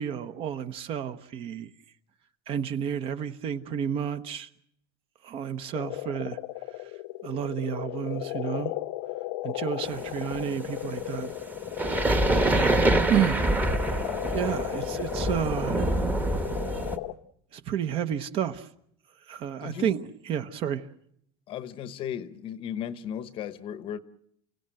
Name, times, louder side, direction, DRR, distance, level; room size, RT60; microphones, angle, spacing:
voice 1, 0.0-1.7 2.5-4.5 5.2-6.4 7.2-8.7 9.4-11.3 12.3-12.8 13.1-13.5 14.3-16.0 17.5-18.7 19.3-20.9, right 9 dB, 35° right, 1.0 m, -31 dB
sound 1, 5.7-17.1, left 17 dB, 75° left, 0.9 m, -35 dB
sound 2, 9.8-17.0, right 2 dB, 10° right, 1.2 m, -26 dB
voice 2, 19.6-20.0 21.5-24.0, left 9 dB, 35° left, 0.9 m, -35 dB
29.5 x 17.5 x 7.8 m
cardioid pair, 165°, 15 cm